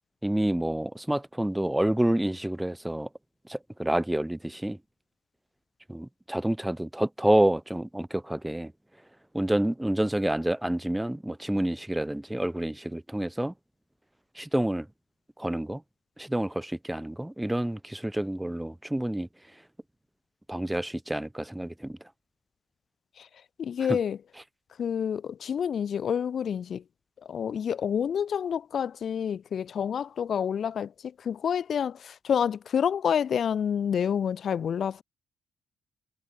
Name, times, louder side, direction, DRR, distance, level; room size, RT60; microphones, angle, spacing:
voice 1, 0.2-3.1 3.5-4.8 5.9-8.7 9.3-13.5 14.4-14.9 15.4-15.8 16.2-19.3 20.5-22.0 23.9-24.0, right 1 dB, 5° right, 6.1 m, -28 dB
voice 2, 23.6-24.2 24.8-26.8 27.2-30.9 31.2-35.0, left 8 dB, 55° left, 2.2 m, -28 dB
cardioid pair, 90°, 0 cm